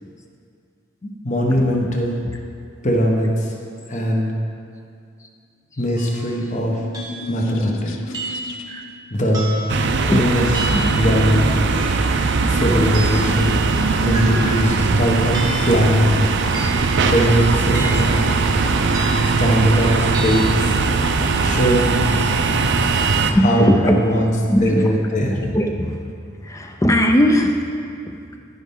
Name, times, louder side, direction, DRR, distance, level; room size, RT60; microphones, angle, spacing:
voice 1, 1.0-2.2 2.8-3.5 3.9-4.3 5.8-6.8 7.3-8.1 9.1-9.6 10.0-10.4 10.9-11.5 12.5-13.6 14.0-16.2 17.1-18.2 19.2-20.8 21.4-22.0 23.4-24.3 24.6-25.3, equal, 35° left, 0 dB, 1.0 m, -20 dB
sound 1, 6.0-6.2 6.9-7.3 8.1-8.6 9.3-9.8 10.5-11.0 11.7-12.1 12.9-13.3 14.1-14.7 15.3-15.8 16.5-17.0 17.7-18.2 18.9-19.4 20.1-20.5, right 2 dB, 20° right, 1.0 m, -31 dB
sound 2, 6.2-9.0, left 4 dB, 70° left, 0.5 m, -35 dB
sound 3, 9.7-23.3, right 4 dB, 55° right, 0.5 m, -19 dB
voice 2, 23.3-26.0 26.4-27.8 28.0-28.1, equal, 15° left, 4 dB, 0.4 m, -20 dB
14.0 x 5.4 x 3.7 m, 2.4 s
head